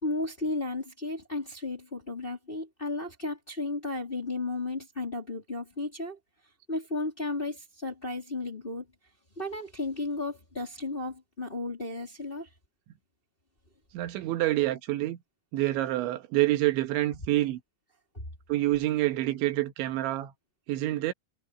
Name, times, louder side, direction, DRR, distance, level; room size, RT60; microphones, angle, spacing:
voice 1, 0.0-6.2 6.7-8.9 9.4-12.5 18.1-18.2, left 2 dB, 15° left, 2.6 m, -34 dB
voice 2, 13.9-15.2 15.5-17.6 18.5-20.3 20.7-21.1, right 16 dB, 85° right, 3.7 m, -27 dB
omnidirectional pair, 5.2 m